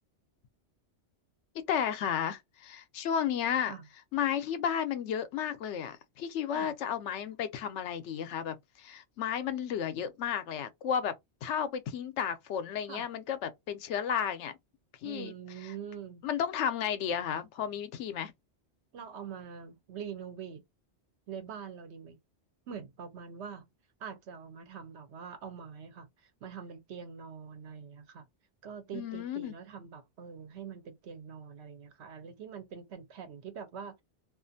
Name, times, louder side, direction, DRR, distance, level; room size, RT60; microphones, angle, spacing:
voice 1, 1.7-3.7 4.1-11.1 11.4-14.5 15.0-15.3 15.6-15.7 16.2-18.3 28.9-29.5, left 8 dB, 85° left, 0.9 m, -33 dB
voice 2, 15.0-16.2 18.9-20.7 21.3-22.2 22.7-23.7 24.0-28.3 28.6-34.0, right 7 dB, 70° right, 1.0 m, -44 dB
2.4 x 2.4 x 2.6 m
omnidirectional pair, 1.2 m